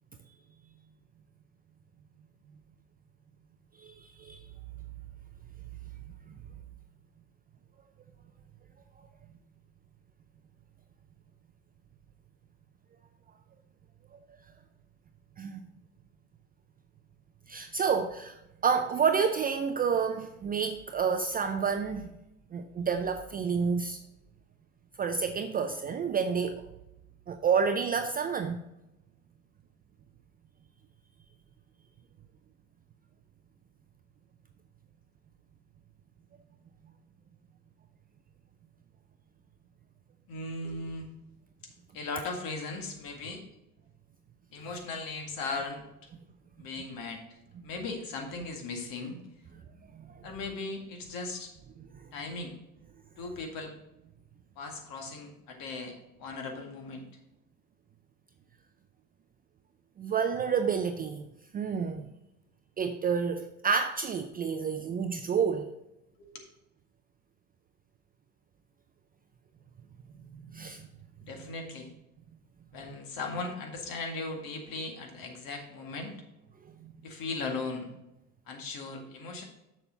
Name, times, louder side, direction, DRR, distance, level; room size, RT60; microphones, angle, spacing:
voice 1, 3.8-4.4 15.4-15.6 17.5-22.1 22.5-24.0 25.0-26.6 27.3-28.6 49.9-50.2 60.0-61.3 61.5-62.1 62.8-65.7 70.5-70.9 76.8-76.9, right 6 dB, 20° right, 7 dB, 0.4 m, -29 dB
voice 2, 40.3-41.1 41.9-43.4 44.5-45.9 46.6-47.4 47.6-49.2 50.2-51.5 52.1-52.5 53.2-53.7 54.6-57.1 66.2-66.3 71.2-71.9 72.7-76.2 77.0-77.9 78.5-79.4, left 3 dB, 45° left, 3 dB, 2.1 m, -38 dB
7.2 x 6.7 x 4.0 m, 0.89 s
hypercardioid pair, 80°, 46 cm